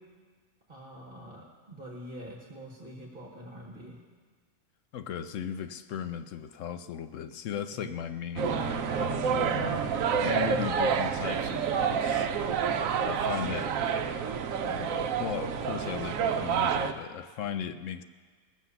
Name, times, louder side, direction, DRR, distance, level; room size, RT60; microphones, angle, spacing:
voice 1, 0.7-4.0 7.7-8.1 10.2-10.7, equal, 40° right, 0 dB, 1.6 m, -43 dB
voice 2, 4.9-9.8 10.2-12.3 13.0-13.7 14.7-18.0, left 8 dB, 70° left, 10 dB, 0.9 m, -37 dB
sound 1, 8.4-16.9, right 7 dB, 70° right, 1.0 m, -28 dB
17.5 x 7.8 x 7.0 m, 1.5 s
omnidirectional pair, 1.5 m